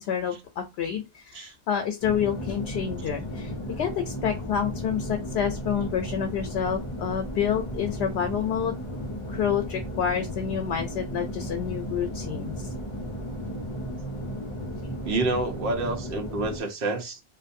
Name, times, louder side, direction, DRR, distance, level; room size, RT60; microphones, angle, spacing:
voice 1, 0.0-9.0 9.3-12.7, left 8 dB, 90° left, 0.8 m, -28 dB
sound 1, 2.0-16.6, equal, 45° left, 0.4 m, -34 dB
voice 2, 15.0-17.2, right 2 dB, 65° right, 0.9 m, -28 dB
2.6 x 2.2 x 2.5 m
omnidirectional pair, 1.1 m